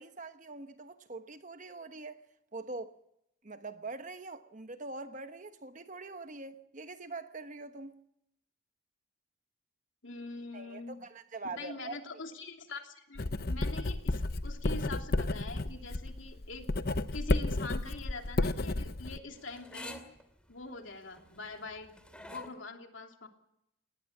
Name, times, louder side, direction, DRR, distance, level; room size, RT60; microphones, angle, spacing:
voice 1, 0.0-2.2 2.5-3.0 3.4-8.0 10.5-12.0, right 3 dB, 40° right, 1.1 m, -43 dB
voice 2, 10.0-11.0 11.6-16.7 16.9-20.0 20.5-23.3, left 3 dB, 70° left, 3.0 m, -44 dB
Writing, 13.1-19.2, left 2 dB, 50° left, 0.8 m, -32 dB
sound 1, 17.1-22.5, left 1 dB, 5° left, 2.3 m, -50 dB
20.0 x 18.5 x 7.3 m
head